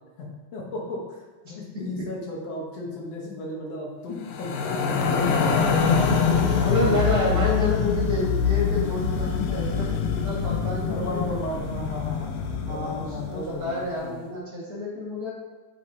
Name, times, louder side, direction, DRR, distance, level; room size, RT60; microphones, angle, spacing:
voice 1, 0.5-7.4 10.9-14.3, left 2 dB, 60° left, -3 dB, 1.9 m, -35 dB
sound 1, 4.2-13.6, left 6 dB, 85° left, 2.5 m, -24 dB
voice 2, 6.6-11.4 12.7-15.3, left 1 dB, 35° right, -7 dB, 1.9 m, -29 dB
8.2 x 5.8 x 2.8 m, 1.3 s
omnidirectional pair, 4.0 m